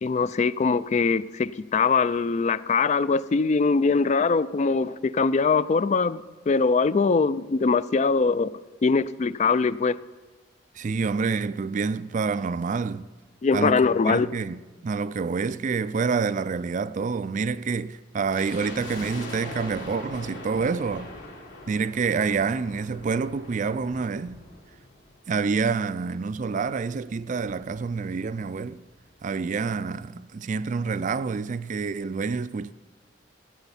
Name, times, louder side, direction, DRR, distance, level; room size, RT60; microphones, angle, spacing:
voice 1, 0.0-8.5 8.8-9.9 13.4-14.3, left 4 dB, 35° left, 0.3 m, -22 dB
voice 2, 10.7-13.1 13.5-21.1 21.7-24.4 25.3-28.8 29.2-32.7, right 5 dB, 40° right, 0.4 m, -27 dB
sound 1, 18.3-25.6 25.8-25.9 26.6-28.4 28.7-28.8 29.0-29.3 29.8-29.9, left 2 dB, 65° left, 3.6 m, -42 dB
14.5 x 9.1 x 7.1 m
head